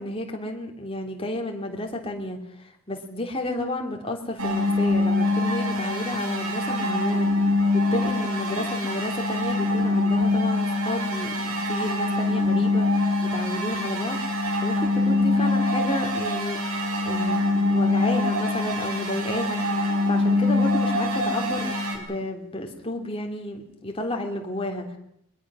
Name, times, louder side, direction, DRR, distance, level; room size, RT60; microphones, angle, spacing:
voice 1, 0.0-16.6 17.0-25.0, left 1 dB, 25° left, 2 dB, 3.0 m, -32 dB
sound 1, 4.4-22.0, left 2 dB, 70° right, 4.4 m, -24 dB
22.5 x 21.5 x 6.3 m, 0.73 s
head